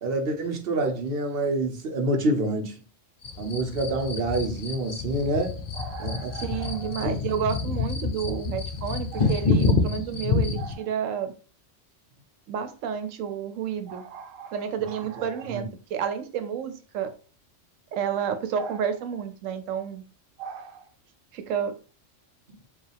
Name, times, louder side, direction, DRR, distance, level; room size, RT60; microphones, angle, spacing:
voice 1, 0.0-2.7 3.4-5.5 6.0-6.3 7.0-7.2 15.5-15.6, right 2 dB, 55° right, 0.9 m, -27 dB
sound 1, 3.2-10.7, left 4 dB, 55° left, 0.5 m, -28 dB
voice 2, 5.7-11.3 12.5-17.1 17.9-20.1 20.4-20.9 21.3-21.8, right 8 dB, 90° right, 1.0 m, -31 dB
4.7 x 2.4 x 3.3 m
omnidirectional pair, 1.3 m